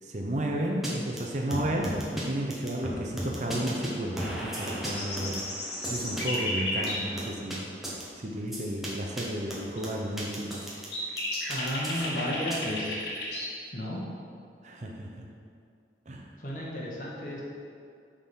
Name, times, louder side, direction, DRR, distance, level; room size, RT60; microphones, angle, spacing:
voice 1, 0.0-7.8 8.2-10.6 14.6-15.3 16.1-16.3, right 1 dB, 40° right, 0 dB, 0.6 m, -33 dB
sound 1, 0.8-0.9 1.2-1.3 1.5-2.2 2.5-3.9 4.2-6.4 6.8-7.6 7.8-8.0 8.5-8.9 9.2-9.3 9.5-10.9 11.2-12.6, equal, ahead, 0.8 m, -35 dB
sound 2, 4.6-7.0 9.8-9.9 10.5-13.5, left 1 dB, 70° left, 1.5 m, -33 dB
voice 2, 11.5-13.0 13.7-14.0 16.4-17.4, left 1 dB, 45° left, -4 dB, 1.2 m, -33 dB
6.5 x 3.7 x 5.2 m, 2.4 s
head